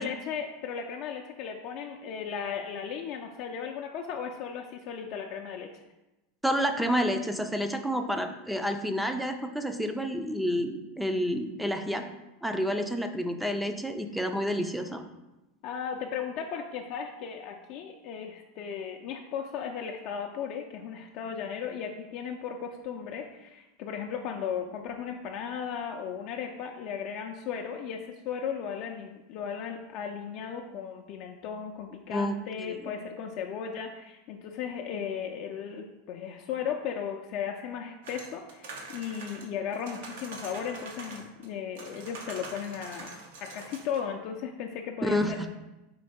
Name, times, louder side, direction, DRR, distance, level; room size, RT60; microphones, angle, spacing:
voice 1, 0.0-5.7 15.6-45.5, left 7 dB, 55° left, 2 dB, 0.4 m, -36 dB
voice 2, 6.4-12.1 12.4-15.0 32.1-32.9 45.0-45.3, equal, 5° right, 6 dB, 0.4 m, -29 dB
sound 1, 38.0-41.5 41.8-44.0, right 3 dB, 80° right, 0.9 m, -44 dB
4.5 x 2.8 x 4.1 m, 1.0 s
hypercardioid pair, 110°, 0 cm